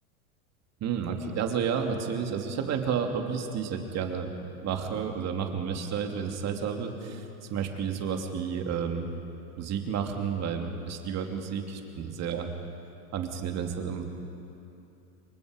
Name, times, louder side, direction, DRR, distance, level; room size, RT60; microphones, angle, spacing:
voice 1, 0.8-4.3 4.6-7.2 7.5-9.1 9.6-12.5 13.1-14.0, right 7 dB, 35° right, 3 dB, 2.8 m, -31 dB
29.0 x 23.5 x 5.2 m, 2.8 s
hypercardioid pair, 115°, 43 cm